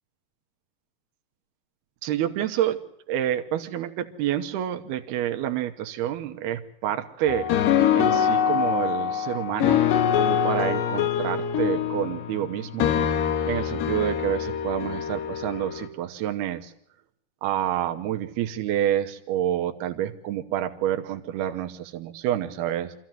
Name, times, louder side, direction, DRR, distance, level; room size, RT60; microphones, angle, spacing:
voice 1, 2.0-2.8 3.1-7.5 7.9-9.8 10.2-12.9 13.5-16.7 17.4-22.9, right 11 dB, 80° right, 7 dB, 2.9 m, -28 dB
sound 1, 7.3-15.9, left 9 dB, 85° left, 3.4 m, -24 dB
25.5 x 14.5 x 7.7 m, 0.78 s
omnidirectional pair, 4.6 m